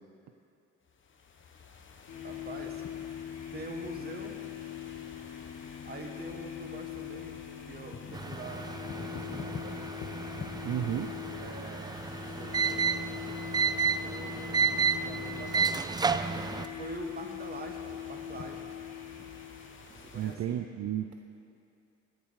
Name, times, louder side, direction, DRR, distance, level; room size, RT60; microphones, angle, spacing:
sound 1, 0.9-20.4, left 5 dB, 40° left, 1.1 m, -49 dB
sound 2, 2.1-20.4, left 12 dB, 70° left, 1.6 m, -42 dB
voice 1, 2.2-2.9 3.5-4.4 5.9-9.9 11.4-13.4 13.8-16.0 16.7-18.7 19.9-20.4, right 3 dB, 30° right, 2 dB, 1.6 m, -45 dB
sound 3, 8.1-16.7, right 5 dB, 15° right, 0.3 m, -32 dB
voice 2, 10.6-11.1 20.1-21.1, right 10 dB, 60° right, 6 dB, 0.6 m, -32 dB
17.5 x 7.5 x 4.8 m, 2.6 s
cardioid pair, 90°, 30 cm